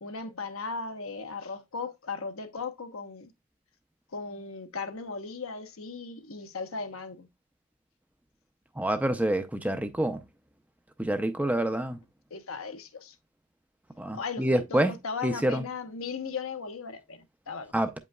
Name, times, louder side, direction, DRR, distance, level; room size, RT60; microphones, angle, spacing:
voice 1, 0.0-3.3 4.1-7.3 12.3-13.1 14.1-17.7, left 4 dB, 80° left, 0.9 m, -37 dB
voice 2, 8.8-10.2 11.0-12.0 14.0-14.9 15.2-15.6 17.7-18.0, right 1 dB, 5° right, 0.4 m, -27 dB
8.3 x 5.3 x 2.3 m
head